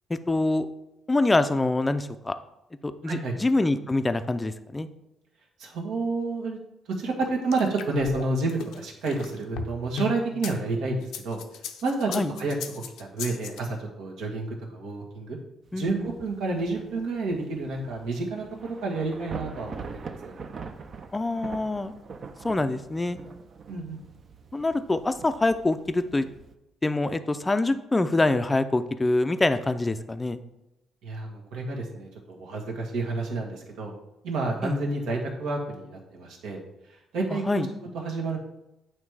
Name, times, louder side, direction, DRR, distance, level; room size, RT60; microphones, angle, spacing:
voice 1, 0.1-0.7 1.1-2.3 2.8-4.9 12.1-12.3 15.7-16.1 21.1-21.9 22.4-23.2 24.5-26.2 26.8-30.4 34.6-34.8 37.3-37.7, left 2 dB, 15° left, 11 dB, 0.4 m, -25 dB
voice 2, 3.0-3.3 5.6-6.6 6.9-11.4 11.8-15.4 15.7-20.3 23.7-24.0 31.0-33.9 34.2-36.6 37.1-37.7 37.9-38.4, right 3 dB, 85° right, -1 dB, 1.5 m, -30 dB
sound 1, 7.2-10.5 11.0-13.6, left 7 dB, 90° left, 0.6 m, -36 dB
Thunder / Rain, 15.7-26.5, right 5 dB, 45° right, 0.5 m, -43 dB
8.8 x 3.1 x 4.8 m, 0.90 s
cardioid pair, 115°, 0 cm